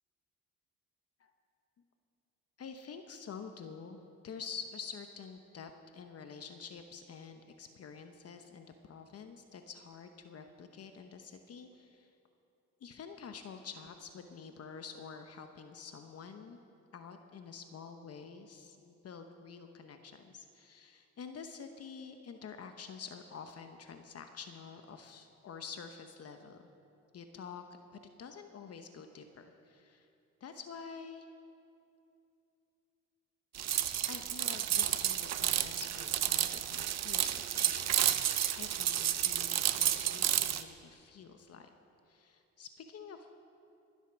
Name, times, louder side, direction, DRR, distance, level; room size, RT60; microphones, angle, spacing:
voice 1, 2.6-12.1 12.8-16.6 16.9-26.6 27.1-27.6 28.2-30.1 30.4-31.3 34.1-37.9 38.6-41.7 42.1-43.3, left 6 dB, 55° left, 6 dB, 1.0 m, -48 dB
sound 1, 33.5-40.6, right 11 dB, 60° right, 0.7 m, -31 dB
21.5 x 8.1 x 6.2 m, 2.7 s
cardioid pair, 90°, 30 cm